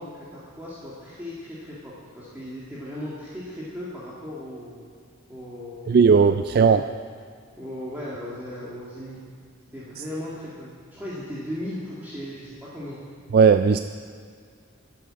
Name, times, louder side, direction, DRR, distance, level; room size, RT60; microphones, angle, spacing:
voice 1, 0.0-4.8 5.3-6.8 7.6-9.2 9.7-13.0, left 1 dB, 10° right, -9 dB, 2.0 m, -37 dB
voice 2, 5.9-6.9 13.3-13.8, right 5 dB, 45° right, 9 dB, 0.3 m, -16 dB
12.5 x 8.7 x 7.6 m, 2.1 s
head